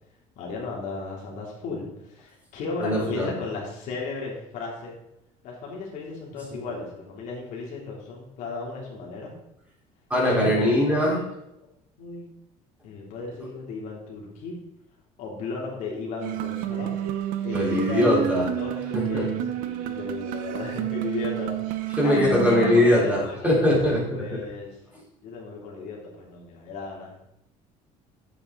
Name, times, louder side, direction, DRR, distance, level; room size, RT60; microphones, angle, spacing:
voice 1, 0.4-5.0 5.4-9.3 10.2-10.8 11.2-11.3 12.0-12.2 12.8-14.6 15.2-16.9 17.4-18.3 18.6-19.3 19.6-24.7 25.2-27.1, left 3 dB, 65° left, -2 dB, 3.1 m, -35 dB
voice 2, 2.8-3.3 10.1-11.2 17.5-18.5 18.9-19.3 22.0-24.4, left 1 dB, 10° right, -5 dB, 4.0 m, -21 dB
sound 1, 16.2-22.8, right 11 dB, 80° right, 0.9 m, -29 dB
9.8 x 7.9 x 4.0 m, 0.81 s
cardioid pair, 140°, 14 cm